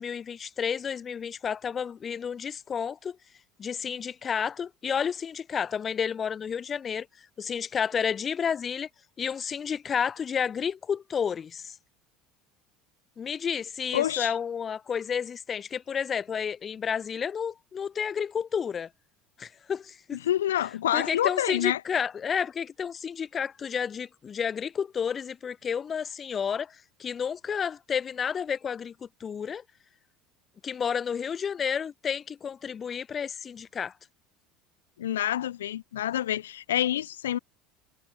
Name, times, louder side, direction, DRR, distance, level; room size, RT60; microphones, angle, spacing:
voice 1, 0.0-3.2 3.6-7.1 7.4-8.9 9.2-11.8 13.2-18.9 19.4-20.2 20.9-29.6 30.6-33.9, left 7 dB, 35° left, 0.5 m, -31 dB
voice 2, 13.9-14.3 20.2-21.8 35.0-37.4, left 12 dB, 85° left, 0.3 m, -27 dB
hypercardioid pair, 75°, 0 cm